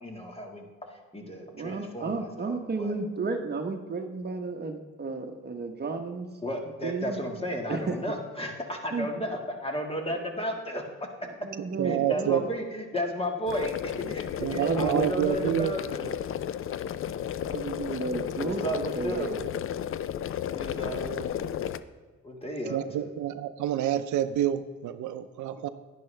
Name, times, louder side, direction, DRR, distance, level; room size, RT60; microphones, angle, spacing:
voice 1, 0.0-2.9 6.4-10.8 11.8-16.2 18.4-19.4 20.5-21.3 22.2-23.1, equal, 20° left, 2 dB, 1.8 m, -34 dB
voice 2, 1.6-6.3 6.8-7.2 7.7-8.0 8.9-9.1 11.2-12.5 14.6-15.2 17.4-19.5, right 4 dB, 35° right, 5 dB, 1.0 m, -32 dB
voice 3, 11.8-12.4 14.4-15.7 22.7-25.7, right 11 dB, 75° right, 11 dB, 0.6 m, -28 dB
sound 1, 13.5-21.8, left 10 dB, 45° left, 0.4 m, -33 dB
10.5 x 10.0 x 3.3 m, 1.4 s
cardioid pair, 90°, 30 cm